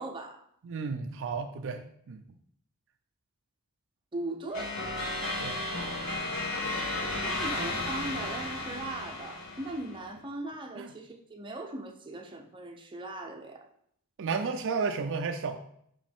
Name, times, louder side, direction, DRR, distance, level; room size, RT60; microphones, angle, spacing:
voice 1, 0.0-0.5 4.1-4.8 7.1-13.7, right 2 dB, 20° right, 0.7 m, -39 dB
voice 2, 0.6-2.2 5.4-5.6 10.8-10.9 14.2-15.6, right 5 dB, 55° right, 0.4 m, -32 dB
sound 1, 4.5-10.0, left 2 dB, 75° left, 2.2 m, -34 dB
5.5 x 5.0 x 3.5 m
head